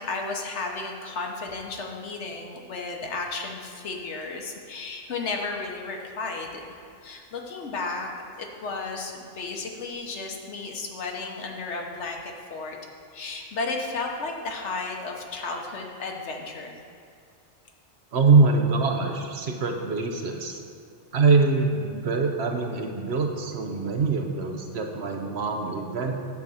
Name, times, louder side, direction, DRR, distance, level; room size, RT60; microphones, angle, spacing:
voice 1, 0.0-6.8 7.0-8.1 8.4-12.8 13.1-16.8, left 3 dB, 65° left, 1 dB, 1.3 m, -33 dB
voice 2, 18.1-20.6 21.1-26.1, right 4 dB, 60° right, 3 dB, 0.9 m, -23 dB
9.4 x 4.0 x 7.1 m, 2.3 s
omnidirectional pair, 1.3 m